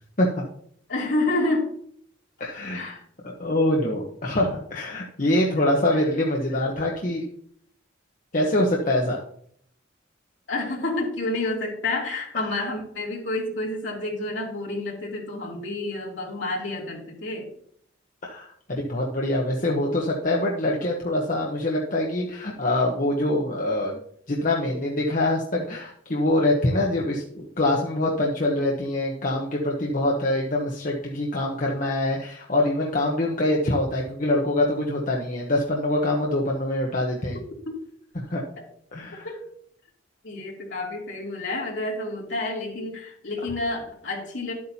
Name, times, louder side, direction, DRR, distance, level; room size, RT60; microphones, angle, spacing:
voice 1, 0.9-1.7 2.7-3.0 10.5-17.5 39.2-39.4 40.2-44.5, left 2 dB, 65° left, -3 dB, 2.9 m, -29 dB
voice 2, 2.4-2.9 3.2-7.2 8.3-9.2 18.2-24.0 24.3-37.4 38.1-38.4 38.9-39.3, left 1 dB, 40° left, -1 dB, 1.0 m, -24 dB
11.5 x 8.4 x 2.8 m, 0.65 s
head